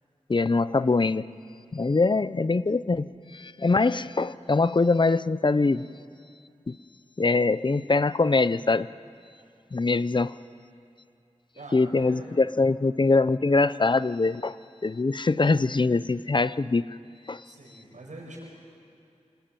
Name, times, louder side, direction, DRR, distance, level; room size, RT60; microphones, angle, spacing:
voice 1, 0.3-1.2 1.7-3.1 3.3-5.8 6.7-6.8 7.2-8.9 9.7-10.4 11.7-14.6 14.8-16.8 17.3-17.4, left 3 dB, 40° left, 16 dB, 0.6 m, -23 dB
voice 2, 11.5-12.5 17.4-18.5, right 1 dB, 80° right, -2 dB, 6.8 m, -44 dB
26.5 x 19.0 x 9.1 m, 2.5 s
wide cardioid pair, 60°, 13 cm